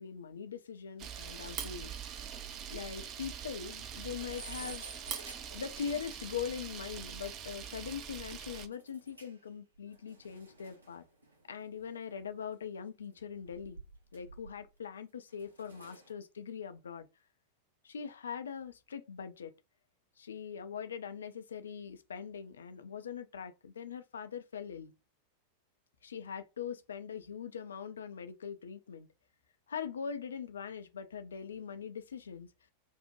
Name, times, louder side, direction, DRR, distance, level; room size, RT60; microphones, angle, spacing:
voice 1, 0.0-1.9 2.7-5.1 5.5-11.0 11.5-13.8 14.1-17.1 17.8-19.5 20.2-24.9 26.0-29.1 29.7-32.7, left 7 dB, 70° left, 0.4 m, -42 dB
Camera, 1.0-8.7, right 8 dB, 35° right, 0.4 m, -43 dB
sound 1, 2.0-2.1 2.4-2.5 2.8-2.9 3.3-3.4 3.7-6.3 6.8-6.9 8.7-9.5 9.8-12.4 13.2-14.8 15.3-16.1, right 2 dB, 80° right, 0.8 m, -52 dB
2.6 x 2.1 x 2.9 m
figure-of-eight pair, 90°, 0 cm